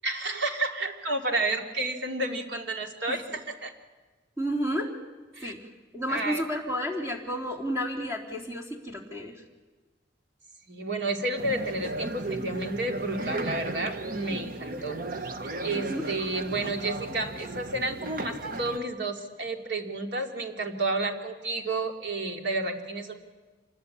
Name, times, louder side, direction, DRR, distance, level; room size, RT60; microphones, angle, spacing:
voice 1, 0.0-3.7 5.3-5.5 6.1-6.4 10.7-15.0 15.6-23.1, right 2 dB, 70° right, 3 dB, 2.9 m, -31 dB
voice 2, 4.4-4.9 5.4-5.7 5.9-9.4 15.7-16.0, equal, 15° right, 0 dB, 3.6 m, -31 dB
sound 1, 11.4-18.8, right 2 dB, 50° right, 1.1 m, -35 dB
27.0 x 21.0 x 8.7 m, 1.3 s
head